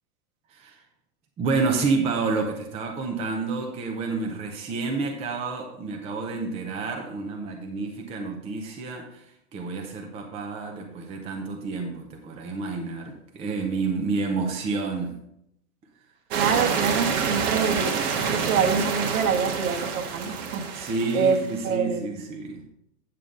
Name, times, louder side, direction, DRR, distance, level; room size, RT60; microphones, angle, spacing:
voice 1, 0.5-0.8 1.4-15.1 20.7-22.6, right 4 dB, 15° right, 2 dB, 0.6 m, -29 dB
sound 1, 16.3-21.7, right 6 dB, 40° right, 1.4 m, -27 dB
voice 2, 16.3-17.9 18.2-20.6 21.1-21.4 21.6-22.0, right 6 dB, 60° right, 3 dB, 1.6 m, -25 dB
9.4 x 7.0 x 3.8 m, 0.77 s
hypercardioid pair, 145°, 47 cm